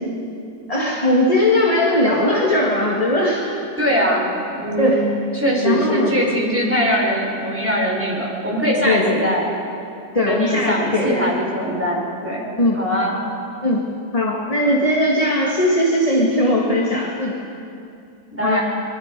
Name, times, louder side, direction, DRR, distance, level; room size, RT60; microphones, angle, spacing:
voice 1, 0.7-3.4 4.8-5.0 5.6-6.1 8.8-9.3 10.1-11.3 12.6-13.0 13.6-13.9 14.1-17.4 18.4-18.6, left 1 dB, 20° left, -2 dB, 1.8 m, -19 dB
voice 2, 3.8-5.1 5.3-9.4 10.2-12.5 12.7-13.1 18.3-18.6, equal, 5° right, -3 dB, 4.8 m, -21 dB
25.0 x 22.5 x 5.3 m, 2.6 s
omnidirectional pair, 1.9 m